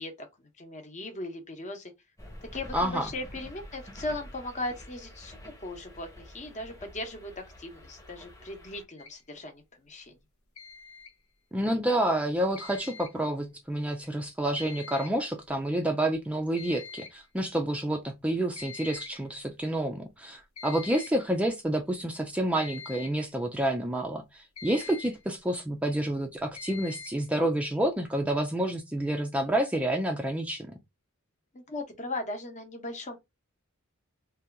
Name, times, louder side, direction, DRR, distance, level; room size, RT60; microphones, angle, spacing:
voice 1, 0.0-1.9 2.5-7.3 7.6-10.2 31.5-33.2, left 2 dB, 35° left, 0.8 m, -38 dB
sound 1, 2.2-8.8, left 1 dB, 15° left, 1.1 m, -47 dB
voice 2, 2.7-3.1 11.5-30.8, right 1 dB, 5° right, 0.3 m, -29 dB
sound 2, 9.0-9.1 10.6-11.1 12.6-13.1 14.6-15.1 15.5-15.6 16.1-16.2 16.6-17.1 18.6-19.2 20.6-21.2 22.6-23.2 24.6-25.2 26.6-27.2, left 5 dB, 80° left, 0.7 m, -44 dB
2.8 x 2.2 x 3.4 m
head